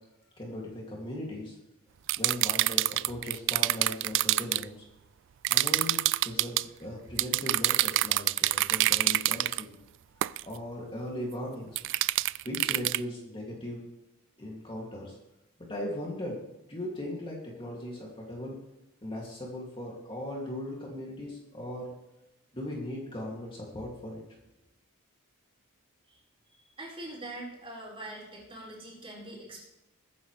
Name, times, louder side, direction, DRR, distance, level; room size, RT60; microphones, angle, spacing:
voice 1, 0.4-1.6 2.2-4.8 5.5-9.8 10.4-11.8 12.4-13.9 14.4-15.2 15.6-16.4 16.7-18.6 19.0-21.9 22.5-24.2, left 1 dB, 25° left, -2 dB, 2.5 m, -38 dB
sound 1, 2.1-4.6 5.4-6.6 7.2-9.6 10.2-10.4 11.8-13.0, right 16 dB, 55° right, 0.3 m, -26 dB
voice 2, 26.8-29.6, right 1 dB, 25° right, -5 dB, 4.8 m, -43 dB
21.5 x 9.8 x 3.3 m, 0.96 s
head